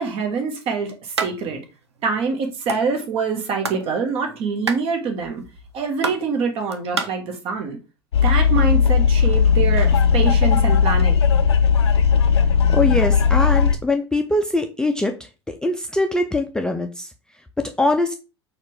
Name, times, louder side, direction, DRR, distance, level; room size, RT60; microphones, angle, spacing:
voice 1, 0.0-1.6 2.0-5.4 5.7-7.8 8.2-11.1, right 5 dB, 45° right, 1.2 m, -25 dB
sound 1, 1.1-1.3 1.6-1.7 2.0-2.8 3.3-3.9 4.1-7.1, right 4 dB, 85° right, 0.5 m, -27 dB
sound 2, 8.1-13.8, left 6 dB, 75° left, 0.5 m, -16 dB
voice 2, 12.7-17.1 17.6-18.1, left 2 dB, 5° left, 0.4 m, -22 dB
4.3 x 2.4 x 4.6 m
figure-of-eight pair, 75°, 14 cm